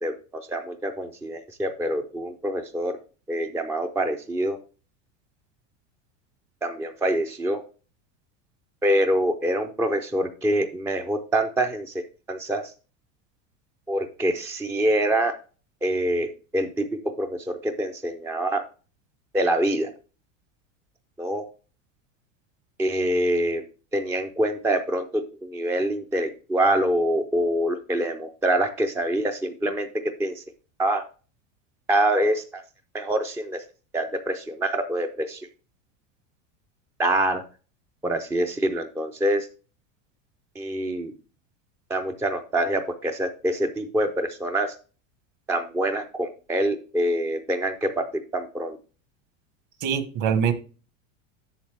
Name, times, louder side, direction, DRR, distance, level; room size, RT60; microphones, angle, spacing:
voice 1, 0.0-3.0 3.3-4.6 6.6-7.6 8.8-11.9 12.3-12.7 13.9-15.3 15.8-16.9 17.2-18.6 19.3-19.9 21.2-21.4 22.8-23.6 23.9-29.9 30.2-30.4 30.8-31.0 31.9-32.6 32.9-33.6 33.9-35.4 37.0-37.4 38.0-39.5 40.6-41.1 41.9-44.7 45.5-48.8, right 1 dB, 5° right, 0.3 m, -25 dB
voice 2, 49.8-50.5, right 7 dB, 45° right, 1.2 m, -23 dB
7.3 x 7.0 x 3.3 m
supercardioid pair, 120°, 42 cm